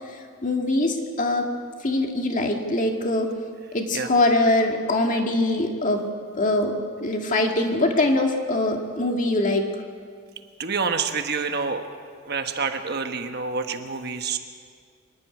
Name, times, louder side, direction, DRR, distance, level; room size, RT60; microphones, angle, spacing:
voice 1, 0.1-1.5 1.8-3.3 3.7-6.0 6.3-6.7 7.0-9.6, left 2 dB, 40° left, 2 dB, 2.1 m, -23 dB
voice 2, 10.6-11.9 12.2-14.4, right 5 dB, 50° right, 6 dB, 1.2 m, -27 dB
24.5 x 11.0 x 9.6 m, 2.1 s
head